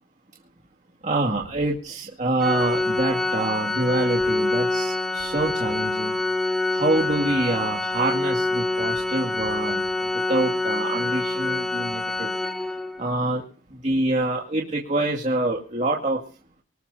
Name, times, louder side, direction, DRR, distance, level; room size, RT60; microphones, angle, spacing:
voice 1, 1.0-6.2 6.7-12.3 13.0-13.4 13.7-16.2, right 2 dB, 35° right, -1 dB, 2.1 m, -26 dB
Organ, 2.4-13.1, left 2 dB, ahead, 1.6 m, -26 dB
24.5 x 14.0 x 2.8 m, 0.38 s
head